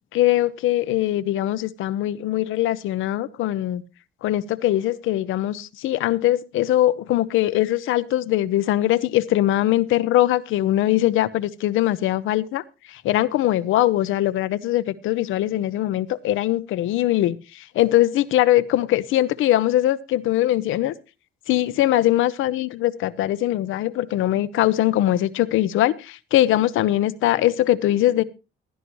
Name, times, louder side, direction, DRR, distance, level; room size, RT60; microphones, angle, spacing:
voice 1, 0.1-3.8 4.2-12.6 12.9-20.9 21.5-28.2, left 14 dB, 85° left, 15 dB, 0.7 m, -21 dB
16.5 x 11.0 x 3.1 m, 0.29 s
cardioid pair, 90°, 20 cm